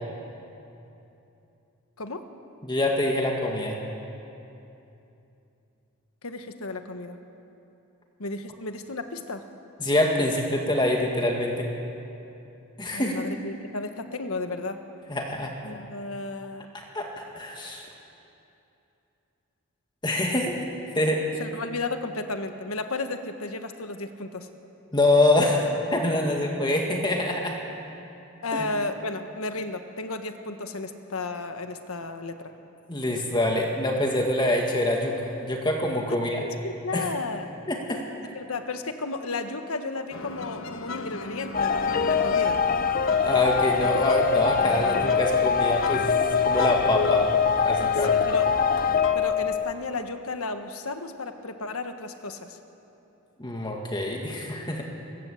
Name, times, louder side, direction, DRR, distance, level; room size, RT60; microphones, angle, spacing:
voice 1, 2.6-3.8 9.8-11.7 12.8-13.2 15.1-15.5 16.7-17.1 17.3-17.9 20.0-20.6 21.0-21.2 24.9-27.6 28.5-28.6 32.9-36.4 36.9-37.1 37.7-38.0 43.2-47.3 47.6-48.2 53.4-54.9, left 1 dB, 20° left, 1 dB, 2.0 m, -25 dB
voice 2, 6.2-7.2 8.2-9.4 12.9-14.8 15.6-16.7 21.4-24.5 28.4-32.5 36.2-37.5 38.3-42.6 48.1-48.5 49.1-52.6, left 3 dB, 85° left, 7 dB, 1.5 m, -33 dB
sound 1, 40.1-49.2, left 3 dB, 65° left, 1.2 m, -38 dB
sound 2, 41.5-49.7, left 6 dB, 40° left, 0.8 m, -23 dB
23.0 x 20.5 x 8.3 m, 2.9 s
head